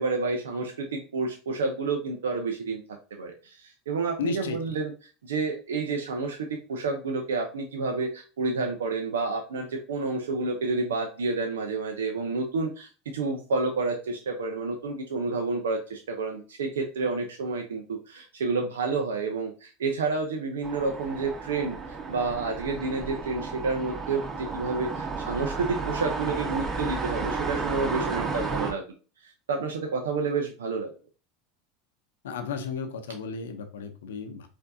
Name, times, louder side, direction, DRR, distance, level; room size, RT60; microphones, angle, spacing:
voice 1, 0.0-2.8 3.1-4.9 5.2-28.8 29.2-30.9, right 3 dB, 85° right, 3 dB, 0.5 m, -29 dB
voice 2, 4.2-4.8 32.2-34.5, left 4 dB, 85° left, 7 dB, 0.6 m, -34 dB
sound 1, 20.6-28.7, right 4 dB, 35° right, 1.8 m, -33 dB
4.4 x 2.6 x 2.6 m, 0.36 s
hypercardioid pair, 95°, 0 cm